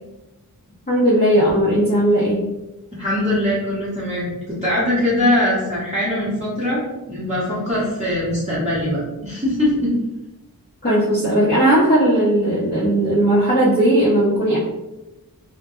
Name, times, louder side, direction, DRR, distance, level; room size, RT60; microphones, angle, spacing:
voice 1, 0.9-2.5 10.8-14.6, right 1 dB, 25° left, -10 dB, 0.7 m, -17 dB
voice 2, 2.9-9.9, left 1 dB, 20° right, -10 dB, 0.9 m, -22 dB
2.1 x 2.1 x 3.0 m, 0.98 s
wide cardioid pair, 45°, 36 cm